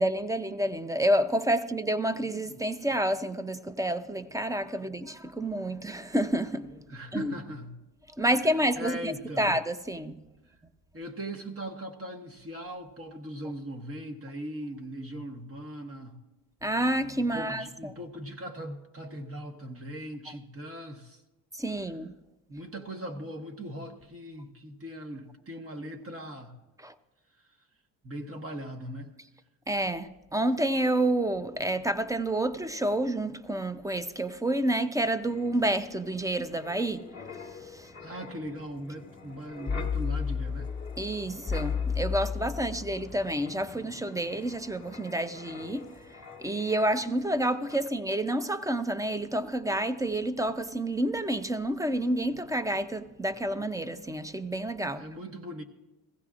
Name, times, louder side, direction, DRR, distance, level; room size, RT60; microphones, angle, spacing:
voice 1, 0.0-6.6 7.1-7.3 8.2-9.1 9.4-10.1 16.6-17.6 21.6-22.1 26.8-26.9 29.7-37.0 41.0-45.8 46.4-55.0, right 1 dB, 10° right, 0.5 m, -29 dB
voice 2, 6.9-7.7 8.2-9.5 10.9-16.2 17.2-21.2 22.5-26.5 28.0-29.1 38.0-40.7 54.9-55.6, right 1 dB, 30° right, 1.2 m, -39 dB
Wind, 35.1-47.4 47.7-47.9, left 5 dB, 25° left, 1.5 m, -37 dB
16.0 x 15.5 x 2.5 m
cardioid pair, 80°, 43 cm